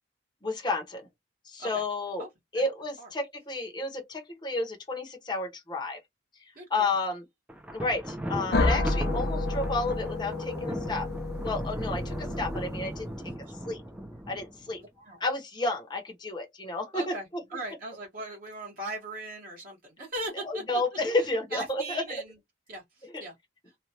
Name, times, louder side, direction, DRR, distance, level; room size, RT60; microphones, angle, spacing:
voice 1, 0.4-1.0 1.5-2.2 2.5-6.0 6.7-7.2 7.7-11.1 11.4-13.1 13.6-13.8 14.3-14.8 15.2-17.1 20.4-22.0 23.1-23.2, left 2 dB, 25° left, 0.8 m, -31 dB
voice 2, 6.5-7.1 12.0-12.1 13.2-13.6 14.7-15.2 16.9-20.8 21.1-22.4 22.7-23.4 23.6-23.8, right 2 dB, 45° right, 1.1 m, -40 dB
Thunder, 7.5-14.7, right 1 dB, 5° right, 0.4 m, -37 dB
sound 1, 8.5-13.2, left 2 dB, 55° left, 0.5 m, -30 dB
3.1 x 2.2 x 2.7 m
head